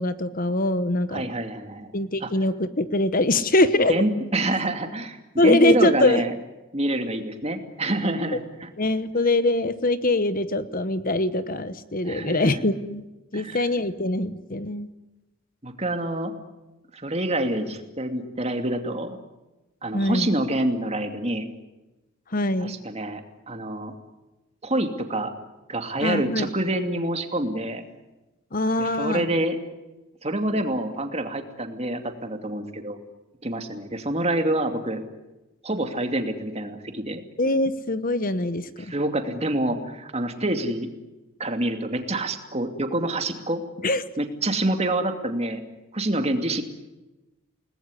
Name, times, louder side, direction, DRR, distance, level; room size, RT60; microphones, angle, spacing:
voice 1, 0.0-1.3 1.9-3.9 5.4-6.2 8.8-13.0 13.3-14.9 19.9-20.3 22.3-22.8 26.0-26.5 28.5-29.2 37.4-38.7 43.8-44.0, left 2 dB, 40° left, 13 dB, 1.0 m, -23 dB
voice 2, 1.1-1.9 2.2-2.3 3.9-6.3 6.7-8.7 12.0-12.6 13.3-13.6 15.6-16.3 16.9-19.2 19.8-21.5 22.6-23.2 23.5-23.9 24.6-25.3 25.7-27.8 28.8-29.6 30.2-33.0 33.4-35.0 35.6-37.2 38.8-40.9 41.4-43.6 44.2-45.6 45.9-46.6, right 1 dB, 30° right, 6 dB, 2.5 m, -27 dB
30.0 x 19.5 x 9.9 m, 1.1 s
head